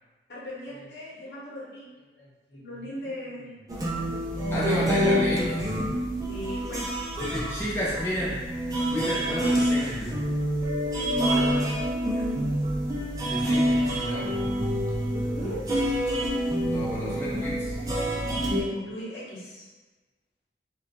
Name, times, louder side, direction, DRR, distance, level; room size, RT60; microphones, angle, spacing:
voice 1, 0.3-3.6 4.3-4.9 6.3-6.8 11.0-12.3 12.9-13.3 15.3-16.5 18.6-19.7, equal, 65° left, -7 dB, 0.9 m, -39 dB
sound 1, 3.7-18.6, equal, 20° right, 0.4 m, -27 dB
voice 2, 4.5-5.6 7.2-8.4 8.9-10.2 13.2-14.3 16.6-17.8, left 1 dB, 15° left, -8 dB, 0.7 m, -31 dB
2.5 x 2.2 x 3.9 m, 1.2 s
head